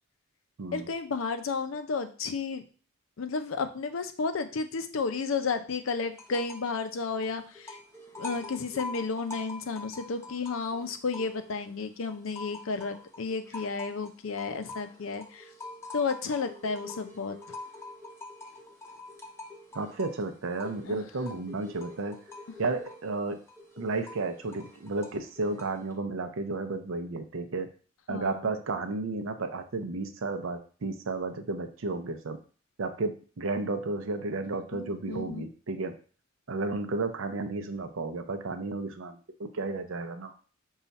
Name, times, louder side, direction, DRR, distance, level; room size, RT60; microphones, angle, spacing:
voice 1, 0.7-2.6 3.2-7.8 8.2-15.5 15.9-17.6 20.8-21.0 28.1-28.6 34.7-35.4, left 4 dB, 85° left, 9 dB, 0.5 m, -32 dB
sound 1, 6.1-6.8 7.0-11.7 12.1-25.9, left 2 dB, 15° left, 0.6 m, -45 dB
voice 2, 19.7-22.2 22.6-23.4 23.8-27.7 28.1-32.4 32.8-35.9 36.5-40.3, right 3 dB, 85° right, 8 dB, 0.6 m, -33 dB
5.5 x 2.4 x 4.1 m, 0.40 s
head